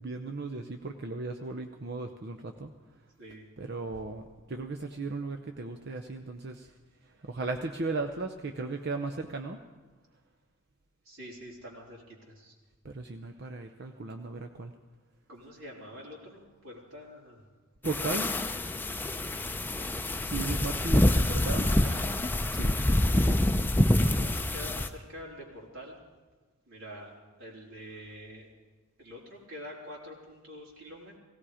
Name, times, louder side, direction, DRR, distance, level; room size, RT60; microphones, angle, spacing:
voice 1, 0.0-2.7 3.6-4.2 4.5-6.7 7.2-9.6 12.8-14.7 17.8-18.3 20.2-21.7 22.5-22.8, right 3 dB, 50° right, 5 dB, 0.7 m, -36 dB
voice 2, 11.1-12.5 15.3-17.4 20.5-20.6 21.3-22.2 24.1-26.0 26.7-27.1 27.4-28.5 29.0-31.2, equal, 70° right, -4 dB, 3.7 m, -46 dB
sound 1, 17.8-24.9, left 1 dB, 10° left, 0.6 m, -26 dB
17.0 x 17.0 x 5.0 m, 1.3 s
head